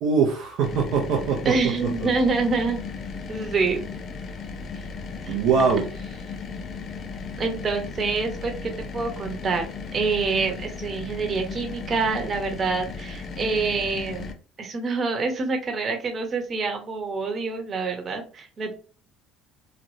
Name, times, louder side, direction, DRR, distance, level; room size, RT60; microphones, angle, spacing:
voice 1, 0.0-1.5 5.3-5.9, right 5 dB, 75° right, 0 dB, 0.6 m, -22 dB
sound 1, 0.6-14.3, left 5 dB, 50° left, 0.6 m, -36 dB
voice 2, 1.4-2.8 3.3-3.9 5.2-5.4 7.4-14.3 14.6-18.7, right 4 dB, 40° right, 3 dB, 1.0 m, -26 dB
3.1 x 2.5 x 2.6 m, 0.38 s
supercardioid pair, 80°, 0 cm